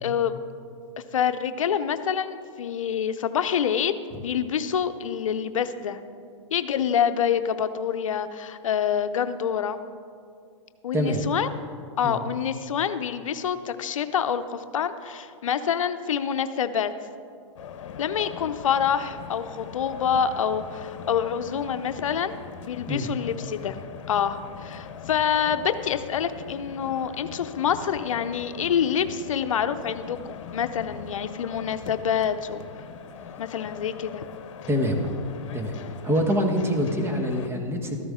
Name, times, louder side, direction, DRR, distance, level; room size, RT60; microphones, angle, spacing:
voice 1, 0.0-0.3 1.1-6.0 6.5-9.8 10.8-11.5 12.0-16.9 18.0-23.8 24.1-32.6 33.4-34.2, left 8 dB, 85° left, 10 dB, 0.6 m, -26 dB
voice 2, 10.9-11.2 12.0-12.2 22.9-23.1 34.7-35.1 35.5-35.7 36.0-38.0, equal, 15° right, 3 dB, 1.3 m, -25 dB
sound 1, 17.6-37.5, left 7 dB, 65° left, 0.9 m, -41 dB
13.5 x 11.0 x 3.7 m, 2.3 s
hypercardioid pair, 120°, 17 cm